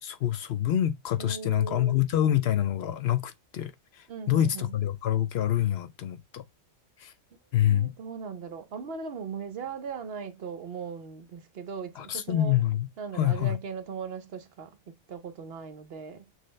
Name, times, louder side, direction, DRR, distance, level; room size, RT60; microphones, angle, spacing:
voice 1, 0.0-3.7 4.0-6.4 7.0-7.1 7.5-7.9 12.0-12.9 13.1-13.6, left 11 dB, 70° left, 0.8 m, -26 dB
voice 2, 1.2-2.0 4.1-4.7 7.5-12.6 13.0-16.2, right 6 dB, 60° right, 0.9 m, -39 dB
6.5 x 2.2 x 3.1 m
omnidirectional pair, 1.2 m